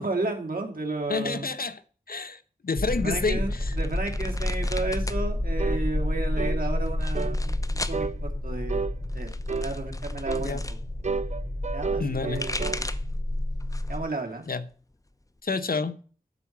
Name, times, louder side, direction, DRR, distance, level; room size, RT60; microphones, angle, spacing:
voice 1, 0.0-1.5 3.0-9.3 9.6-10.6 11.7-12.9 13.9-14.4, right 2 dB, 70° right, 2.7 m, -33 dB
voice 2, 1.1-1.8 2.1-3.8 10.4-10.6 12.0-12.4 14.5-14.6 15.4-16.0, left 4 dB, 75° left, 0.9 m, -29 dB
sound 1, 2.8-14.0, left 1 dB, 45° left, 4.8 m, -30 dB
sound 2, 3.5-5.2 5.5-6.2 6.9-8.0 9.0-10.8 12.0-13.2 13.6-14.1 14.4-15.4, left 2 dB, 20° left, 0.8 m, -38 dB
sound 3, 5.6-5.8 6.4-6.6 7.1-7.4 7.9-8.2 8.7-8.9 9.5-9.7 10.3-10.5 11.0-12.8, right 5 dB, 50° right, 0.4 m, -31 dB
12.5 x 4.7 x 7.3 m
wide cardioid pair, 50°, 15 cm